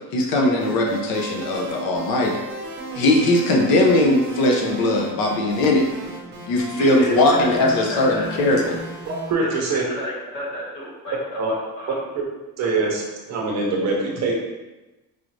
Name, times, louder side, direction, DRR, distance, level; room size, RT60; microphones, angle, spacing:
voice 1, 0.1-2.4 2.9-5.8 6.5-8.8, left 2 dB, 65° left, 0 dB, 0.7 m, -19 dB
sound 1, 0.6-9.3, right 2 dB, 30° right, 1.0 m, -34 dB
voice 2, 6.7-7.1 7.4-8.8 9.4-9.5 9.9-11.2 11.5-12.0, left 1 dB, 50° left, -5 dB, 1.4 m, -32 dB
voice 3, 9.3-9.8 11.4-11.5 12.1-12.2 12.6-14.3, right 3 dB, 45° right, -1 dB, 0.8 m, -23 dB
4.7 x 2.5 x 3.1 m, 1.1 s
cardioid pair, 180°, 38 cm